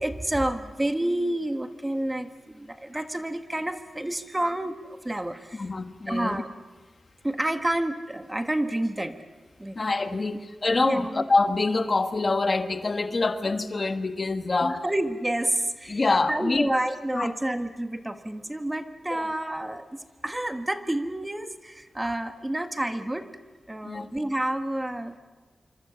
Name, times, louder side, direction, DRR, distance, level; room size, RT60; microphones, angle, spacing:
voice 1, 0.0-5.6 6.1-6.5 7.2-9.1 9.6-9.8 10.1-10.2 10.8-11.2 14.6-16.0 16.3-23.3 23.7-25.2, right 1 dB, 15° right, 8 dB, 1.5 m, -29 dB
voice 2, 5.5-6.4 9.7-14.8 15.9-16.7 17.1-17.3 19.1-19.3 23.8-24.1, left 3 dB, 40° left, 8 dB, 1.3 m, -25 dB
27.0 x 25.0 x 7.0 m, 1.4 s
wide cardioid pair, 95°, 0 cm